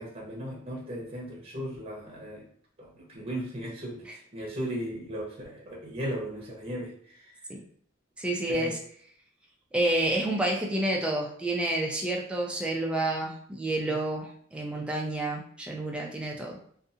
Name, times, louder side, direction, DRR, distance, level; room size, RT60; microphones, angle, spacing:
voice 1, 0.0-2.4 2.8-7.5 8.5-8.8, equal, 30° right, -3 dB, 0.7 m, -37 dB
voice 2, 8.2-8.8 9.7-16.6, right 1 dB, 5° right, -1 dB, 0.3 m, -29 dB
2.6 x 2.4 x 2.5 m, 0.62 s
head